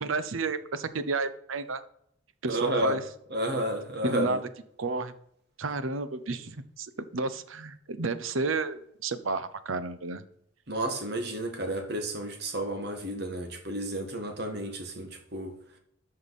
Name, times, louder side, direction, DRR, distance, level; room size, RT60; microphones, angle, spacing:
voice 1, 0.0-1.8 2.4-3.0 4.0-4.4 4.8-5.1 5.6-10.2, right 3 dB, 80° right, 13 dB, 0.8 m, -31 dB
voice 2, 2.5-3.0 3.3-4.4 10.7-15.5, right 1 dB, 55° right, 5 dB, 1.7 m, -31 dB
13.0 x 5.4 x 4.2 m, 0.71 s
head